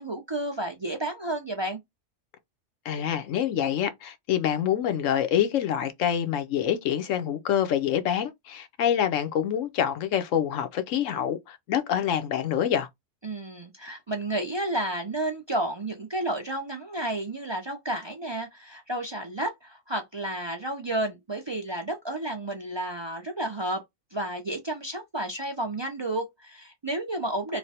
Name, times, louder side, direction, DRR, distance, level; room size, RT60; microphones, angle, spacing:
voice 1, 0.0-1.8 13.2-23.8 24.1-27.6, right 1 dB, 40° right, 0.4 m, -31 dB
voice 2, 2.8-12.9, left 9 dB, 85° left, 1.1 m, -26 dB
3.2 x 2.2 x 4.1 m
omnidirectional pair, 1.3 m